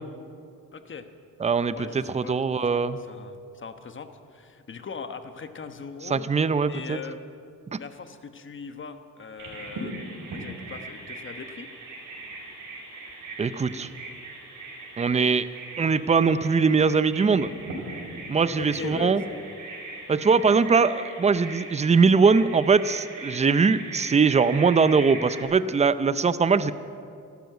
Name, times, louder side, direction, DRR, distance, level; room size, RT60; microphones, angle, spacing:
voice 1, 0.7-1.1 1.7-2.4 2.6-6.3 6.6-7.2 7.8-11.7 18.5-19.6, left 5 dB, 35° left, 9 dB, 1.1 m, -39 dB
voice 2, 1.4-3.0 6.0-7.0 7.7-7.8 13.4-13.9 15.0-15.5 15.8-17.5 18.3-19.2 20.1-26.7, right 5 dB, 20° right, 14 dB, 0.5 m, -21 dB
Bird vocalization bird call bird song, 9.4-25.4, right 2 dB, 80° right, 5.2 m, -39 dB
13.5 x 13.0 x 8.0 m, 2.4 s
cardioid pair, 95°, 32 cm